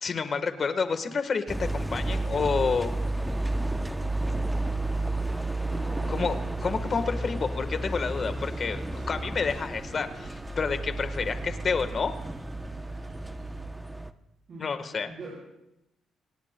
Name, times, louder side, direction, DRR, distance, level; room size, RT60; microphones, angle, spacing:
voice 1, 0.0-2.9 6.1-6.4 6.6-12.1 14.6-15.1, left 5 dB, 45° left, 9 dB, 1.3 m, -29 dB
sound 1, 1.5-14.1, right 2 dB, 5° right, 0.7 m, -32 dB
voice 2, 5.6-6.3 14.5-15.4, right 3 dB, 50° right, -7 dB, 7.7 m, -42 dB
sound 2, 6.3-13.7, right 2 dB, 70° right, 3.3 m, -48 dB
25.5 x 18.0 x 2.2 m, 0.89 s
cardioid pair, 90°, 0 cm